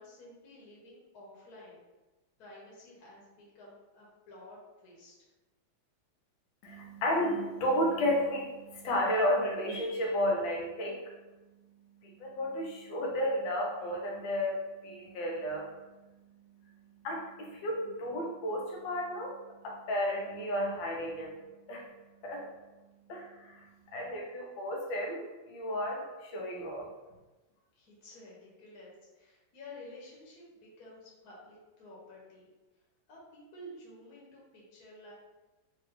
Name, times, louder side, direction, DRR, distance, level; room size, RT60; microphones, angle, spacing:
voice 1, 0.0-1.8 2.4-5.1 27.7-32.5 33.1-35.1, left 1 dB, 55° left, -4 dB, 1.4 m, -52 dB
voice 2, 6.6-11.0 12.0-15.7 17.0-21.4 21.7-21.9 22.2-22.5 23.1-25.2 25.5-26.9, equal, 80° left, 0 dB, 1.5 m, -32 dB
3.7 x 2.7 x 3.2 m, 1.1 s
omnidirectional pair, 2.1 m